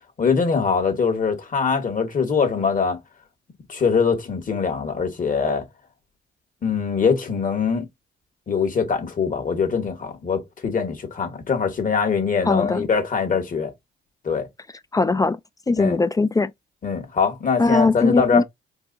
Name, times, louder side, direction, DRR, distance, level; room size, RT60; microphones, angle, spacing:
voice 1, 0.2-3.0 3.7-5.7 6.6-7.9 8.5-13.7 14.2-14.5 15.8-16.0 16.8-18.4, left 5 dB, 40° left, 1.9 m, -22 dB
voice 2, 12.5-12.8 14.9-15.4 15.7-16.5 17.6-18.4, left 3 dB, 20° left, 0.4 m, -20 dB
4.6 x 2.8 x 2.6 m
cardioid pair, 90°, 20 cm